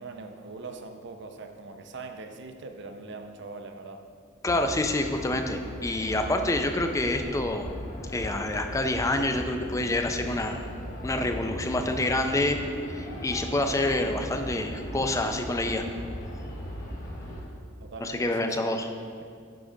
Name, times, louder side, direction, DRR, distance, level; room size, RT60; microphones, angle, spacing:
voice 1, 0.0-4.0 17.8-18.7, right 3 dB, 60° right, 6 dB, 0.6 m, -42 dB
voice 2, 4.4-7.7 8.1-10.7 11.0-12.6 12.8-15.9 18.0-18.9, left 2 dB, 15° left, 6 dB, 0.4 m, -27 dB
sound 1, 4.5-17.4, equal, 45° left, 1.3 m, -38 dB
9.6 x 3.7 x 5.0 m, 2.3 s
head